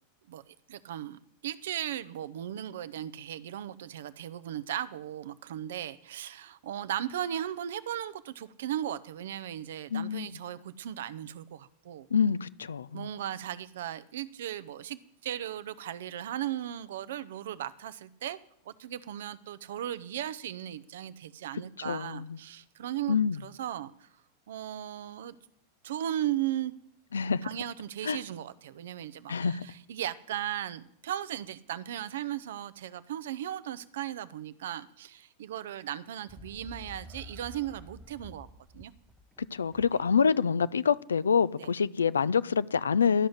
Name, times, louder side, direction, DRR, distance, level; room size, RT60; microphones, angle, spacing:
voice 1, 0.3-12.1 12.9-18.4 18.7-24.1 24.5-25.4 25.8-26.7 27.4-38.5 38.7-38.9 39.9-40.0 41.6-41.7, right 11 dB, 70° right, 0.7 m, -37 dB
voice 2, 9.9-10.4 12.1-13.1 21.8-22.4 23.1-23.4 27.1-27.5 28.0-28.2 29.3-29.7 39.4-43.3, left 6 dB, 80° left, 0.4 m, -26 dB
sound 1, 36.3-40.1, left 1 dB, ahead, 0.8 m, -49 dB
12.5 x 6.3 x 9.7 m
hypercardioid pair, 95°, 0 cm